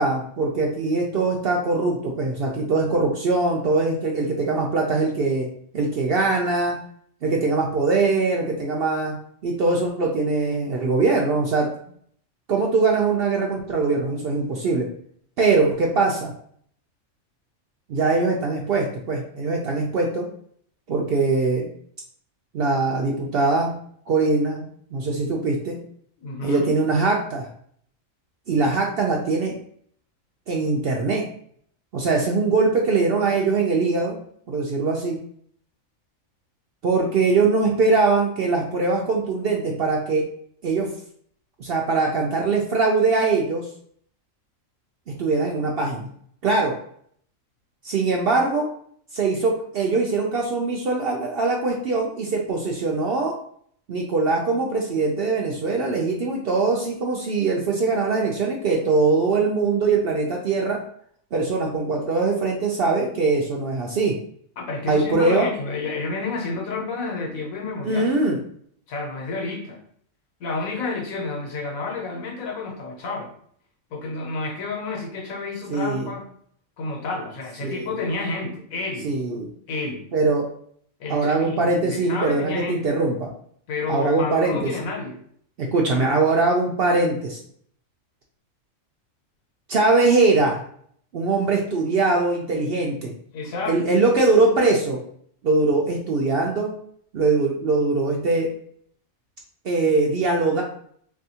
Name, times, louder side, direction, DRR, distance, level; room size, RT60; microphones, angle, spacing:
voice 1, 0.0-5.5 5.7-6.8 7.2-9.1 9.4-11.7 12.5-14.9 15.4-16.3 17.9-20.3 20.9-21.7 22.5-23.7 24.1-24.6 24.9-25.8 26.4-27.5 28.5-29.5 30.5-31.2 31.9-34.2 34.5-35.2 36.8-40.2 40.6-40.9 41.6-43.7 45.2-46.1 46.4-46.7 47.8-48.7 49.1-53.3 53.9-60.8 61.3-64.1 64.9-65.5 67.8-68.4 75.7-76.1 77.6-77.9 79.0-79.5 80.1-80.5 81.1-83.3 83.9-84.7 85.7-87.4 89.7-90.6 91.1-93.1 93.7-95.0 95.4-96.7 97.1-98.5 99.6-100.6, right 3 dB, 65° right, 0 dB, 0.6 m, -22 dB
voice 2, 26.2-26.7 64.6-68.1 68.9-69.8 70.4-73.3 73.9-76.3 76.8-79.1 79.7-80.0 81.0-82.8 83.7-85.2 93.3-94.0, left 3 dB, 85° left, 1 dB, 1.3 m, -30 dB
3.4 x 2.7 x 2.7 m, 0.63 s
omnidirectional pair, 1.4 m